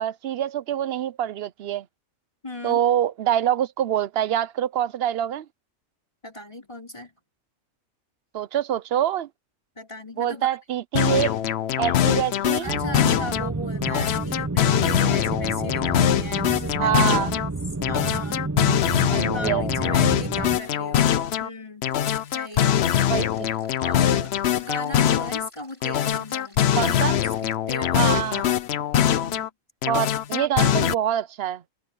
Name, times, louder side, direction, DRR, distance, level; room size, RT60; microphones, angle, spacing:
voice 1, 0.0-1.8 2.6-5.5 8.3-9.3 10.2-11.3 11.8-12.7 16.8-17.3 19.1-19.6 23.0-23.5 26.8-27.2 27.9-28.4 29.9-31.6, right 10 dB, 65° right, 0.7 m, -25 dB
voice 2, 2.4-2.8 6.2-7.1 9.7-10.5 12.6-17.1 17.9-18.8 19.3-21.8 22.3-23.0 23.8-28.6 29.1-29.5, equal, 25° left, 4.7 m, -38 dB
sound 1, 10.9-13.5 13.8-17.5 17.8-21.5 21.8-25.5 25.8-29.5 29.8-30.9, left 10 dB, 60° left, 0.9 m, -23 dB
sound 2, 12.6-20.6, right 3 dB, 25° right, 0.4 m, -30 dB
sound 3, 21.8-27.6, left 1 dB, 40° left, 7.4 m, -54 dB
omnidirectional pair, 1.3 m